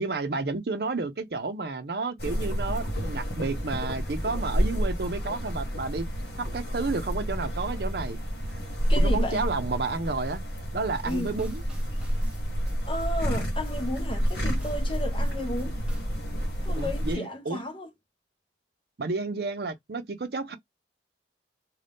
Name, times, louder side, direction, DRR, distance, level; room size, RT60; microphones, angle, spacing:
voice 1, 0.0-6.1 6.4-8.2 9.0-10.4 10.7-11.6 16.7-17.6 19.0-20.6, right 3 dB, 60° right, 0.6 m, -31 dB
sound 1, 2.2-17.2, equal, 65° left, 1.1 m, -29 dB
voice 2, 8.9-9.4 11.1-11.3 12.9-15.8 16.6-17.9, left 1 dB, 30° left, 0.7 m, -33 dB
sound 2, 11.0-16.1, right 1 dB, 5° right, 0.6 m, -52 dB
2.6 x 2.3 x 3.4 m
head